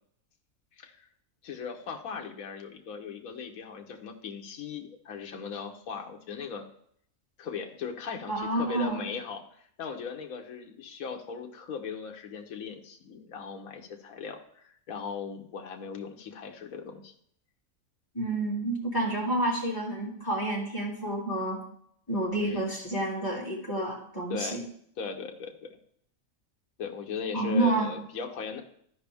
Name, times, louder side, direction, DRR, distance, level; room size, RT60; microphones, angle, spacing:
voice 1, 0.8-1.1 1.4-6.6 7.4-17.1 19.1-19.3 22.4-22.7 24.3-24.6 25.0-25.8 26.8-28.6, left 5 dB, 75° left, 2 dB, 1.4 m, -38 dB
voice 2, 8.3-9.0 18.1-21.6 22.1-24.6 27.3-27.9, right 1 dB, 15° left, -4 dB, 2.5 m, -29 dB
13.5 x 5.2 x 3.4 m, 0.66 s
omnidirectional pair, 1.5 m